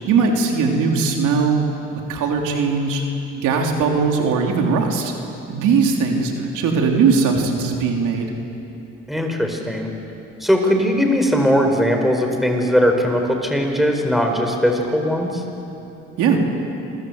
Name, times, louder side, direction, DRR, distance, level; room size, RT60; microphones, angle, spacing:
voice 1, 0.1-1.6 2.1-3.0 3.3-5.1 5.5-8.3 16.2-16.4, right 5 dB, 90° right, 1 dB, 3.5 m, -19 dB
voice 2, 9.1-9.9 10.4-15.4, equal, ahead, 3 dB, 4.8 m, -19 dB
28.5 x 22.0 x 8.1 m, 2.8 s
cardioid pair, 90°, 30 cm